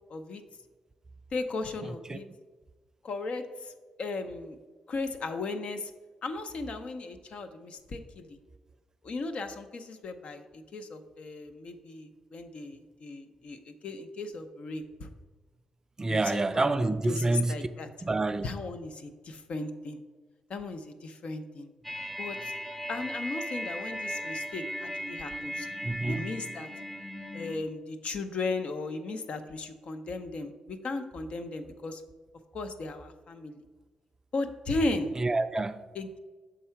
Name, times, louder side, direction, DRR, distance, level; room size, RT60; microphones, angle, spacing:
voice 1, 0.1-0.4 1.3-2.3 3.0-3.7 4.0-4.6 4.9-5.9 6.2-8.3 9.0-15.1 16.1-17.9 18.4-20.0 20.5-21.7 22.2-22.4 22.9-25.7 26.1-26.7 27.3-32.0 32.5-33.6 34.3-35.1 35.9-36.2, left 3 dB, 60° left, 0.6 m, -36 dB
voice 2, 16.0-17.5 18.0-18.5 25.8-26.3 35.2-35.8, right 2 dB, 25° right, 0.3 m, -27 dB
sound 1, 21.8-27.6, equal, 5° left, 0.7 m, -37 dB
6.7 x 3.7 x 4.4 m
cardioid pair, 80°, 2 cm